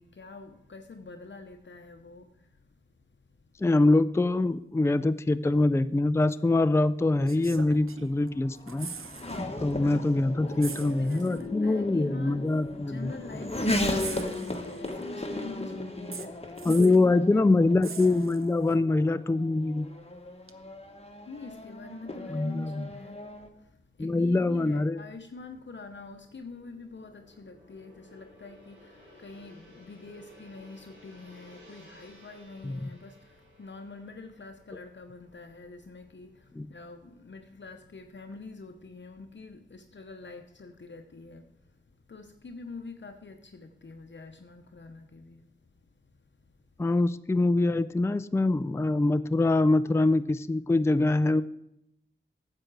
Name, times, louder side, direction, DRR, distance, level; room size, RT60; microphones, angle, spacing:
voice 1, 0.0-2.5 9.8-12.5 12.8-17.5 21.2-23.2 23.6-41.5 42.1-45.4, left 3 dB, 60° left, 0.8 m, -45 dB
voice 2, 3.6-8.9 9.6-13.1 16.6-19.9 22.3-22.9 24.0-25.0 32.6-32.9 36.6-36.7 46.8-51.4, left 2 dB, 15° left, 0.4 m, -24 dB
sound 1, 6.3-6.4 7.2-8.3 8.6-9.4 9.7-9.9 10.6-11.5 12.5-12.6 14.0-15.0 16.1-17.1 17.8-18.7 20.5-20.6, right 6 dB, 90° right, 0.7 m, -43 dB
Race car auto racing / Accelerating revving vroom, 7.4-23.5, left 1 dB, 30° left, 1.4 m, -36 dB
Gong, 25.0-37.0 37.4-37.6, equal, 60° right, 4.1 m, -57 dB
9.8 x 7.7 x 4.7 m
wide cardioid pair, 50°, 21 cm